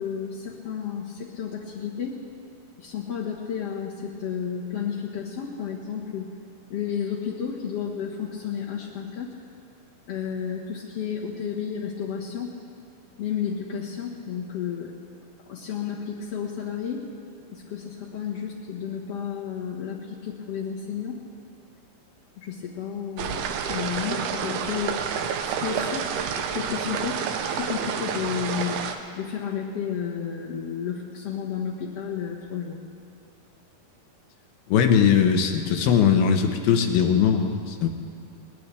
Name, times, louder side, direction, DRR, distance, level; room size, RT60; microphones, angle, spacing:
voice 1, 0.0-2.2 2.8-6.3 6.7-9.3 10.1-12.5 13.2-14.9 15.5-17.0 17.5-21.2 22.4-25.0 25.4-27.2 27.5-28.9 29.2-32.8, left 7 dB, 60° left, -5 dB, 1.7 m, -32 dB
sound 1, 23.2-29.0, right 7 dB, 80° right, 2.9 m, -29 dB
voice 2, 34.7-37.9, left 7 dB, 75° left, 5 dB, 2.8 m, -20 dB
21.5 x 20.0 x 3.4 m, 2.6 s
omnidirectional pair, 4.7 m